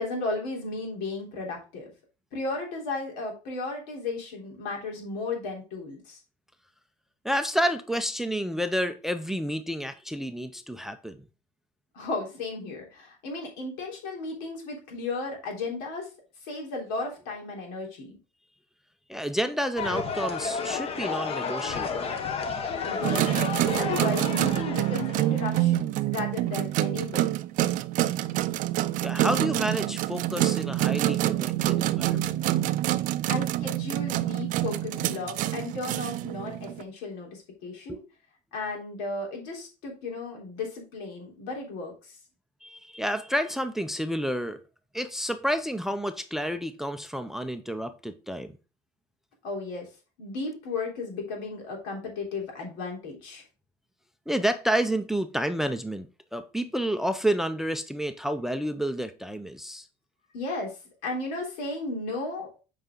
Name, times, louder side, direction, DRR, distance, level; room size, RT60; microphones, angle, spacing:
voice 1, 0.0-1.9 2.3-6.2 11.9-16.1 16.4-18.2 22.8-23.3 23.8-27.3 33.3-38.0 38.5-42.2 49.4-49.9 50.2-53.4 60.3-60.8 61.0-62.5, left 3 dB, 85° left, 3.5 m, -34 dB
voice 2, 7.2-11.2 19.1-22.1 29.0-32.4 37.9-38.0 42.6-44.6 44.9-48.6 54.3-59.9, equal, ahead, 0.5 m, -30 dB
sound 1, 19.8-25.6, left 5 dB, 35° left, 1.0 m, -32 dB
sound 2, 23.0-36.8, right 14 dB, 55° right, 0.5 m, -27 dB
8.1 x 4.9 x 3.7 m
cardioid pair, 145°, 16 cm